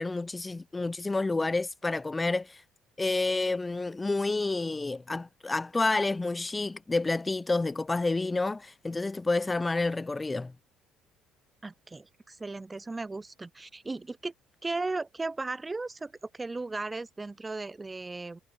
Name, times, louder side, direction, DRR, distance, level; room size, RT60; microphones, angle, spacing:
voice 1, 0.0-2.6 3.0-10.5, left 3 dB, 10° left, 5.7 m, -29 dB
voice 2, 11.6-14.3 14.6-18.4, right 3 dB, 10° right, 5.9 m, -36 dB
cardioid pair, 170°, 0 cm